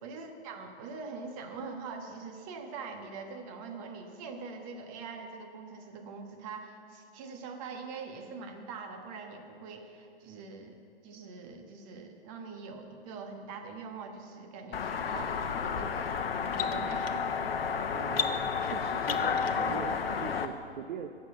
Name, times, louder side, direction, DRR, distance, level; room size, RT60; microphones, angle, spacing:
voice 1, 0.0-10.8 11.0-17.2, right 4 dB, 30° right, 4 dB, 1.3 m, -43 dB
sound 1, 14.7-20.5, left 6 dB, 60° left, 0.8 m, -31 dB
voice 2, 17.9-21.1, right 7 dB, 45° right, 8 dB, 0.7 m, -42 dB
11.0 x 7.6 x 8.3 m, 2.4 s
figure-of-eight pair, 120°, 33 cm